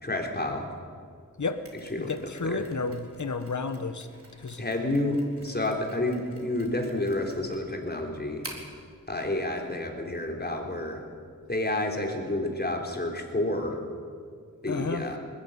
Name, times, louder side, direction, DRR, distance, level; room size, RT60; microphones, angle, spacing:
voice 1, 0.0-0.7 1.9-2.7 4.6-8.4 9.1-11.0 11.5-13.8 14.6-15.2, left 1 dB, 30° left, 2 dB, 3.7 m, -30 dB
Mechanisms, 1.6-8.8, right 1 dB, 40° right, 4.1 m, -49 dB
voice 2, 2.1-4.1 4.4-4.6 14.7-15.1, left 4 dB, 60° left, 10 dB, 1.4 m, -31 dB
20.5 x 14.0 x 9.3 m, 2.1 s
cardioid pair, 50°, 34 cm